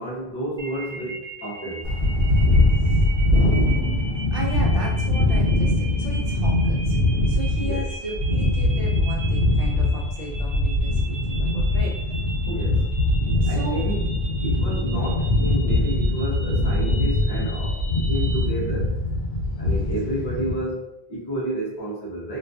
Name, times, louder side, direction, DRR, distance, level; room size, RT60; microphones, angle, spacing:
voice 1, 0.0-1.9 7.6-7.9 12.4-12.9 13.5-14.1 14.4-19.0 19.6-22.4, right 1 dB, 30° left, -4 dB, 0.5 m, -31 dB
sound 1, 0.6-18.4, right 3 dB, 35° right, 0.5 m, -39 dB
sound 2, 1.8-20.5, left 1 dB, 70° left, 0.8 m, -22 dB
voice 2, 3.4-7.0 7.3-11.9 12.5-12.8 13.4-13.9 14.5-14.8, right 1 dB, 65° right, -3 dB, 0.9 m, -36 dB
2.5 x 2.3 x 2.3 m, 0.87 s
omnidirectional pair, 1.1 m